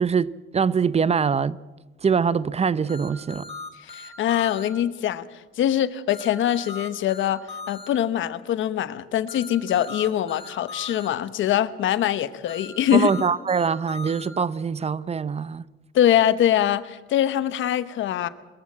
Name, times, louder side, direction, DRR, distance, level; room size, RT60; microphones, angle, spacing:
voice 1, 0.0-1.6 2.0-3.4 12.9-15.6, right 6 dB, 30° right, 0.6 m, -23 dB
sound 1, 2.9-4.7 6.1-7.9 9.3-11.1 12.5-14.3, left 3 dB, 30° left, 3.6 m, -38 dB
voice 2, 3.8-5.3 5.6-7.4 7.7-13.1 15.9-18.3, left 11 dB, 75° left, 1.0 m, -23 dB
22.0 x 15.0 x 8.6 m
cardioid pair, 90°, 20 cm